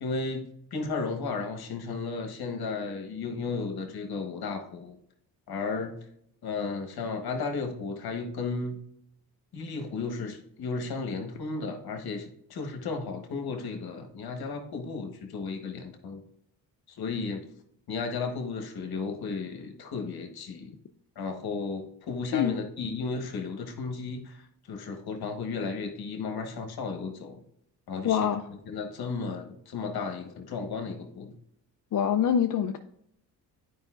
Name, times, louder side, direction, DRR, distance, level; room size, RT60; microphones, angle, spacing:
voice 1, 0.0-5.0 5.5-6.0 6.4-8.8 9.5-16.2 16.9-17.4 17.9-20.7 21.2-27.4 27.9-28.3 28.7-31.3, left 4 dB, 70° left, 1.3 m, -34 dB
voice 2, 28.0-28.4 31.9-32.8, left 8 dB, 50° left, 0.5 m, -25 dB
9.6 x 5.0 x 2.4 m
cardioid pair, 80°, 39 cm